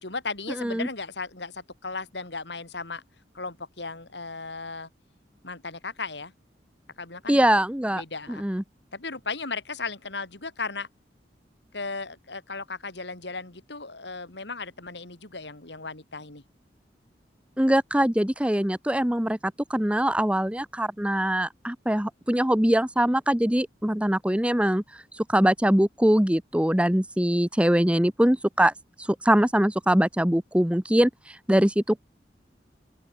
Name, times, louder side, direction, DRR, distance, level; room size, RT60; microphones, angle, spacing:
voice 1, 0.0-3.0 3.3-4.9 5.4-6.3 7.0-7.4 8.0-8.5 8.9-10.9 11.7-16.4, left 4 dB, 75° left, 4.2 m, -36 dB
voice 2, 0.6-0.9 7.3-8.0 8.3-8.6 17.6-28.7 29.0-32.0, right 1 dB, 5° right, 0.9 m, -23 dB
open air
head